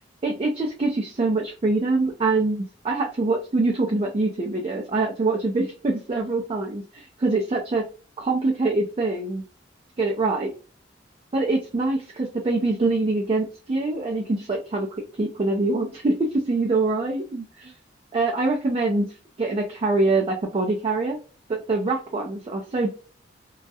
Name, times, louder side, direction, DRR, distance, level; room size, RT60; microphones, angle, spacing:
voice 1, 0.2-7.8 8.2-9.4 10.0-10.5 11.3-14.9 15.2-17.7 18.1-19.1 19.4-21.2 21.5-22.9, right 3 dB, 30° right, 0 dB, 0.4 m, -24 dB
2.2 x 2.0 x 2.7 m, 0.37 s
head